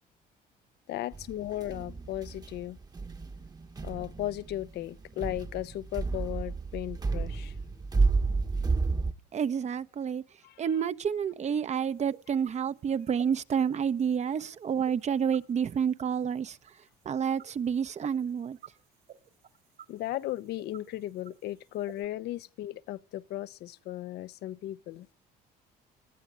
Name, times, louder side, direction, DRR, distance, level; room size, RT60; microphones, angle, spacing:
voice 1, 0.9-2.8 3.8-7.5 10.4-10.7 19.9-25.1, left 14 dB, 75° left, 1.0 m, -36 dB
sound 1, 1.1-9.1, right 4 dB, 25° right, 1.3 m, -31 dB
voice 2, 9.3-10.2 10.6-16.6 17.0-18.6, right 7 dB, 40° right, 1.1 m, -29 dB
sound 2, 11.8-22.1, right 10 dB, 60° right, 3.0 m, -52 dB
20.0 x 15.0 x 9.6 m
cardioid pair, 110°, 17 cm